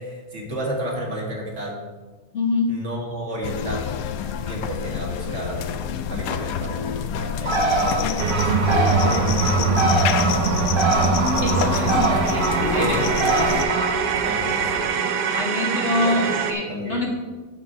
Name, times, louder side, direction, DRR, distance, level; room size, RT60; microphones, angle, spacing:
voice 1, 0.0-1.8 2.7-3.9 4.4-5.6 6.1-10.9 11.4-12.0 12.8-13.6 14.2-14.9 15.9-16.2 16.7-17.1, right 1 dB, 45° right, -2 dB, 1.9 m, -32 dB
voice 2, 2.3-2.7 11.4-13.0 15.3-17.1, left 2 dB, 45° left, -1 dB, 1.5 m, -25 dB
sound 1, 3.4-13.6, left 7 dB, 70° left, 0.9 m, -27 dB
Bird, 7.4-14.9, right 2 dB, 20° right, 0.8 m, -25 dB
sound 2, 8.2-16.5, right 5 dB, 80° right, 1.3 m, -23 dB
7.2 x 6.7 x 5.6 m, 1.3 s
omnidirectional pair, 1.8 m